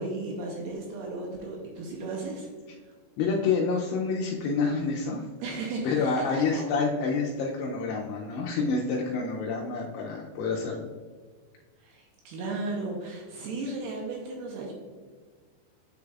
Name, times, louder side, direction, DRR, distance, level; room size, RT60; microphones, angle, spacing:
voice 1, 0.0-2.5 5.4-6.6 11.8-14.7, right 2 dB, 75° right, -1 dB, 2.6 m, -35 dB
voice 2, 3.2-5.3 5.8-10.9, left 4 dB, 85° left, -2 dB, 2.3 m, -28 dB
9.3 x 4.9 x 2.4 m, 1.6 s
omnidirectional pair, 5.2 m